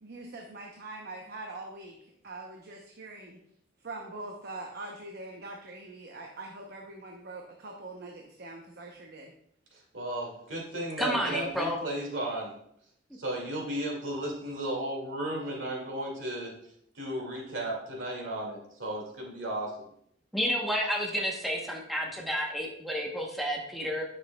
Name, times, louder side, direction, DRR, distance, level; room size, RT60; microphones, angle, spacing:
voice 1, 0.0-3.4 3.8-9.3, right 2 dB, 55° right, 1 dB, 0.8 m, -43 dB
voice 2, 9.7-12.5 13.2-16.5 17.0-19.7, right 1 dB, 80° right, -1 dB, 2.2 m, -34 dB
voice 3, 11.0-11.8 20.3-24.0, equal, ahead, -1 dB, 1.0 m, -30 dB
9.1 x 6.4 x 2.3 m, 0.71 s
head